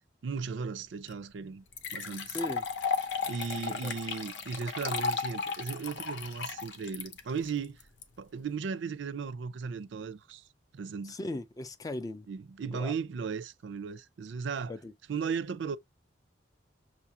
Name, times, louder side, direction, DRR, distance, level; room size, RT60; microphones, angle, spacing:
voice 1, 0.2-1.6 1.9-2.4 3.3-7.8 8.2-10.4 10.7-11.2 12.3-14.7 15.1-15.8, right 5 dB, 75° right, 0.4 m, -36 dB
sound 1, 1.1-1.2 1.7-8.0, left 5 dB, 65° left, 0.7 m, -34 dB
voice 2, 3.6-4.0 11.0-12.3 12.7-12.9 14.7-14.9, left 2 dB, 20° left, 0.3 m, -38 dB
6.2 x 2.4 x 2.7 m
head